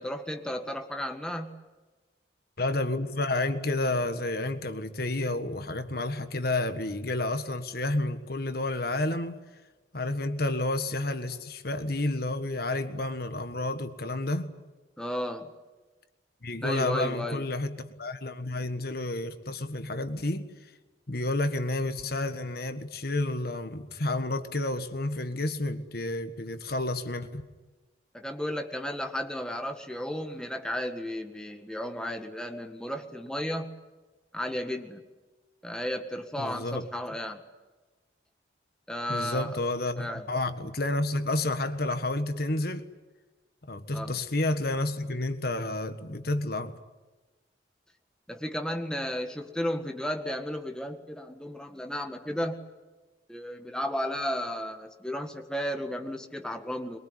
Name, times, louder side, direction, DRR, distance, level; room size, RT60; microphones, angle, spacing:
voice 1, 0.0-1.6 15.0-15.5 16.6-17.4 28.1-33.7 34.3-35.0 35.6-37.4 38.9-39.6 40.0-40.3 43.9-44.2 48.3-52.6 53.3-57.0, equal, 5° left, 1.8 m, -33 dB
voice 2, 2.6-9.4 9.9-14.5 16.4-20.4 21.1-27.4 36.4-36.9 39.1-42.9 43.7-46.8, left 2 dB, 55° left, 1.6 m, -30 dB
23.5 x 22.5 x 9.7 m
head